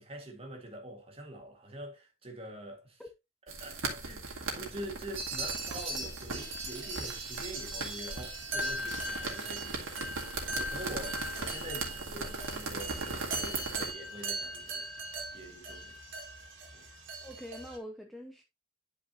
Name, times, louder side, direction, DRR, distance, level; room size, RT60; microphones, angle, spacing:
voice 1, 0.0-3.0 3.5-10.1 10.4-14.9 15.3-16.0 16.7-16.9, right 1 dB, 30° right, 1.9 m, -45 dB
sound 1, 3.5-13.9, right 3 dB, 85° right, 2.2 m, -39 dB
sound 2, 5.2-17.8, right 2 dB, 70° right, 2.2 m, -39 dB
voice 2, 16.8-18.4, equal, ahead, 0.6 m, -45 dB
10.5 x 4.9 x 2.8 m
head